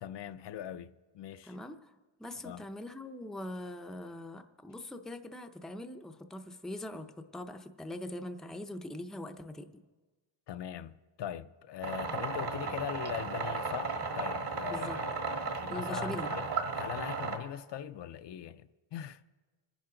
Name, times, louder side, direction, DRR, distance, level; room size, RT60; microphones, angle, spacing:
voice 1, 0.0-1.6 2.4-2.6 10.5-15.0 15.4-16.4 16.7-19.2, left 10 dB, 60° left, 0.5 m, -41 dB
voice 2, 1.4-1.9 2.2-9.8 14.7-15.0 15.7-16.4, left 1 dB, ahead, 0.5 m, -42 dB
sound 1, 11.8-17.4, right 4 dB, 55° right, 1.6 m, -35 dB
27.0 x 10.5 x 3.8 m
wide cardioid pair, 165°, 48 cm